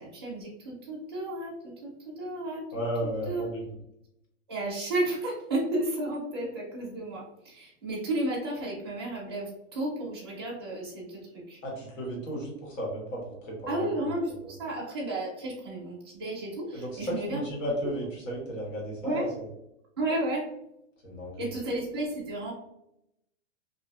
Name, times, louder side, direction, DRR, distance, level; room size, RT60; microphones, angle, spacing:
voice 1, 0.0-2.7 3.0-3.4 4.5-11.6 13.7-17.5 19.0-19.3 20.0-20.5 21.4-22.5, right 1 dB, 20° right, -5 dB, 0.4 m, -33 dB
voice 2, 2.7-3.7 11.6-14.1 14.4-14.5 16.7-19.4 21.0-21.5, equal, 90° left, -2 dB, 1.5 m, -34 dB
2.8 x 2.4 x 2.3 m, 0.81 s
supercardioid pair, 180°, 37 cm